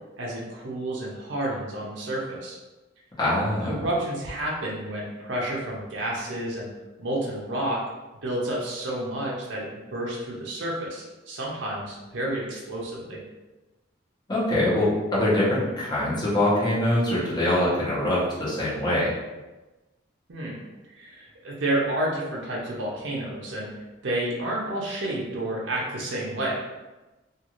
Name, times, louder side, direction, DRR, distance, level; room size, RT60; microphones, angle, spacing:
voice 1, 0.2-2.6 3.6-6.7 7.0-7.8 8.2-13.2 20.3-20.6 20.9-23.7 24.0-26.6, right 1 dB, 65° right, -4 dB, 0.5 m, -30 dB
voice 2, 3.2-3.9 14.3-19.1, left 1 dB, 20° left, -8 dB, 0.8 m, -23 dB
2.4 x 2.4 x 2.9 m, 1.1 s
head